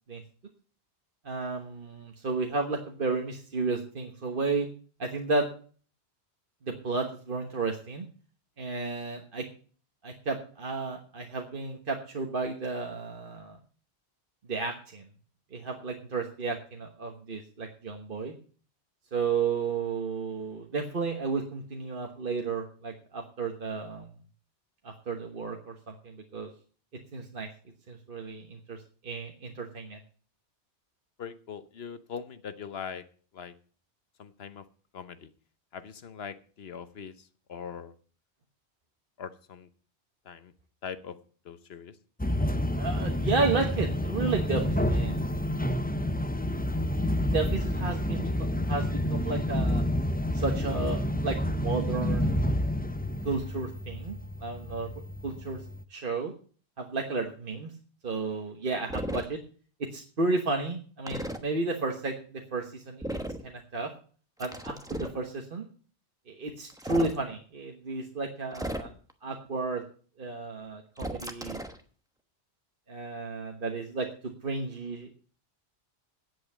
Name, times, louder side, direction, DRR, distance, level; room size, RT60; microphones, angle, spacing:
voice 1, 1.2-4.7 5.0-5.5 6.6-8.1 8.6-9.4 10.0-13.6 14.5-15.1 15.5-18.3 19.1-24.1 24.8-26.5 27.1-27.5 27.9-30.0 42.7-45.2 47.2-49.8 50.3-52.4 53.2-54.9 55.2-55.6 55.9-56.3 56.8-57.7 58.0-59.4 59.8-63.9 64.4-65.7 66.3-68.9 69.2-69.8 70.2-71.6 72.9-75.1, right 3 dB, 50° right, 2 dB, 1.5 m, -32 dB
voice 2, 31.2-33.0 33.3-33.5 34.2-34.6 34.9-35.3 35.7-37.9 39.2-39.7 40.2-40.5 40.8-41.2 41.4-42.0, left 7 dB, 65° left, 12 dB, 1.1 m, -41 dB
sound 1, 42.2-55.8, left 1 dB, 15° left, 0.4 m, -29 dB
sound 2, 58.9-59.3 61.1-61.4 63.0-63.4 64.4-65.2 66.7-67.2 68.5-69.1 71.0-71.8, right 1 dB, 5° right, 1.0 m, -35 dB
9.4 x 8.1 x 7.3 m, 0.42 s
omnidirectional pair, 1.1 m